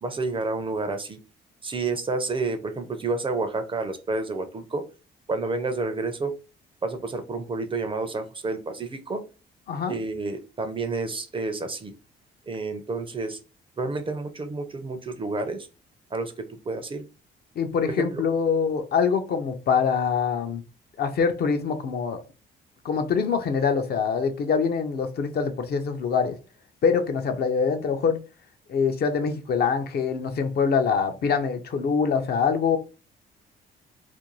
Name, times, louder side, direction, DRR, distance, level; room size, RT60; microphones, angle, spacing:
voice 1, 0.0-1.2 1.6-4.8 5.3-6.4 6.8-9.2 9.9-11.9 12.5-13.4 13.8-15.7 16.1-17.0 17.8-18.2, right 3 dB, 25° right, 7 dB, 0.4 m, -30 dB
voice 2, 17.6-20.6 21.0-22.2 22.8-26.4 26.8-28.2 28.7-32.8, left 6 dB, 55° left, 7 dB, 0.5 m, -24 dB
2.5 x 2.2 x 3.0 m, 0.32 s
cardioid pair, 90°, 20 cm